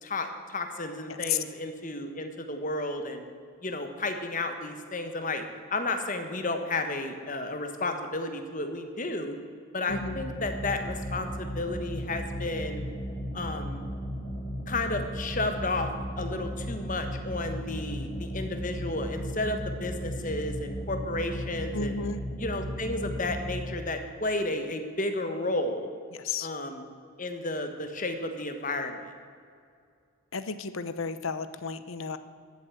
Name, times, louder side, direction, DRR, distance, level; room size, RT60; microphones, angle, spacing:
voice 1, 0.0-3.2 3.6-9.3 9.7-12.9 13.3-13.8 14.7-15.9 16.2-22.0 22.4-25.9 26.4-26.9 27.2-29.0, left 2 dB, 40° left, 7 dB, 1.3 m, -32 dB
voice 2, 9.9-10.2 21.7-22.2 26.1-26.5 30.3-32.2, left 5 dB, 75° left, 12 dB, 0.8 m, -33 dB
sound 1, 9.9-23.5, equal, 20° left, 3.9 m, -35 dB
14.5 x 8.2 x 7.9 m, 2.2 s
head